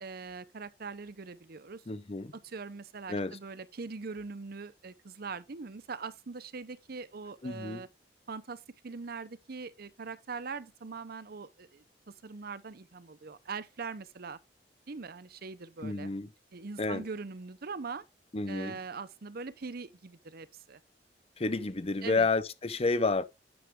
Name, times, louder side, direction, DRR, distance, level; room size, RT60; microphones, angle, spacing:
voice 1, 0.0-1.8 2.3-7.9 8.3-14.4 14.9-16.1 16.5-18.0 18.5-20.8 22.0-22.3, right 4 dB, 60° right, 0.7 m, -42 dB
voice 2, 1.9-2.3 3.1-3.4 7.4-7.8 15.8-16.3 16.8-17.0 18.3-18.8 21.4-23.2, left 3 dB, 35° left, 0.7 m, -30 dB
9.6 x 6.4 x 3.7 m
head